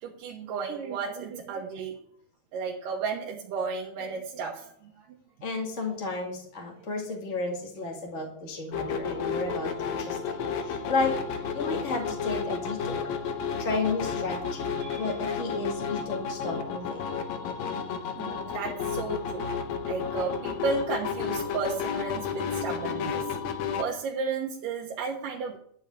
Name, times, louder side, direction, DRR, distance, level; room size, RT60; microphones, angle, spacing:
voice 1, 0.0-1.9 2.5-5.1 14.8-15.1 18.2-19.5 19.9-23.2 23.8-25.6, right 5 dB, 70° right, -1 dB, 2.7 m, -33 dB
voice 2, 5.4-10.4 10.6-11.2 11.5-13.1 13.6-14.6 15.0-17.0 22.9-23.1, left 3 dB, 25° left, -1 dB, 1.7 m, -32 dB
sound 1, 8.7-23.8, left 6 dB, 70° left, 1.8 m, -32 dB
12.5 x 5.5 x 8.2 m, 0.64 s
omnidirectional pair, 4.2 m